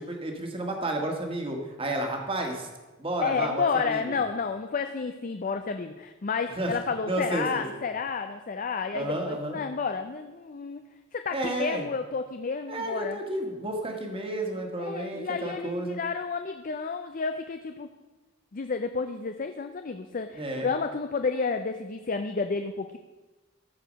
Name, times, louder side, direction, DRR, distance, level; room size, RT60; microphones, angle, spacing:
voice 1, 0.0-2.7 3.0-4.2 6.5-6.8 7.0-7.8 8.9-9.6 11.3-11.8 12.7-16.0 20.3-20.7, right 1 dB, 30° right, 3 dB, 1.6 m, -31 dB
voice 2, 3.2-10.8 11.1-13.2 14.8-17.9 18.5-23.0, left 5 dB, 45° left, 7 dB, 0.5 m, -31 dB
14.0 x 4.8 x 6.3 m, 1.2 s
head